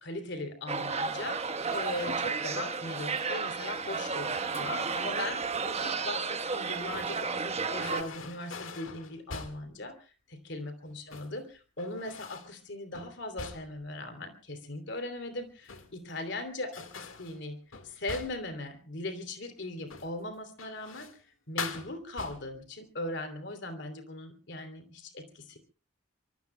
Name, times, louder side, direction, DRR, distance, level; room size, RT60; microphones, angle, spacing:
voice 1, 0.0-17.6 17.8-21.1 21.5-25.6, left 2 dB, 60° left, 7 dB, 3.1 m, -39 dB
sound 1, 0.7-8.0, right 4 dB, 30° right, 1.2 m, -32 dB
sound 2, 4.5-5.0 6.5-7.3 7.8-9.8 10.9-11.4 11.8-12.6 12.9-13.9 15.4-16.2 16.7-18.6 19.8-20.2 20.6-21.2 21.6-22.7, left 5 dB, 80° left, 1.8 m, -43 dB
24.5 x 24.0 x 2.3 m, 0.35 s
head